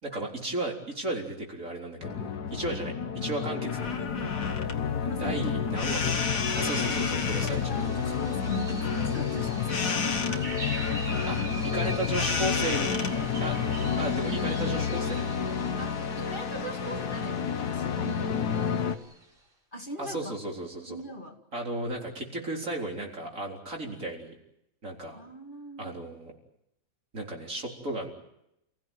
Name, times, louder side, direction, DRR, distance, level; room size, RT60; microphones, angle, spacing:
voice 1, 0.0-3.9 5.0-8.0 11.3-11.4 11.6-12.9 13.4-13.6 14.0-15.2 20.0-21.0 21.5-24.3 24.8-25.2 25.8-26.3 27.1-28.1, right 1 dB, 55° right, 0 dB, 4.4 m, -34 dB
sound 1, 2.0-19.0, left 6 dB, 90° left, 1.8 m, -30 dB
sound 2, 3.7-14.1, left 4 dB, 60° left, 2.1 m, -35 dB
voice 2, 4.0-4.5 5.0-5.4 6.7-6.9 7.4-10.0 12.1-12.3 15.8-18.4 19.7-20.2 20.9-21.4 25.1-26.0, equal, 30° left, 3 dB, 2.3 m, -41 dB
sound 3, 6.7-19.2, right 1 dB, 35° right, 4.1 m, -42 dB
28.5 x 17.0 x 9.3 m, 0.82 s
omnidirectional pair, 1.6 m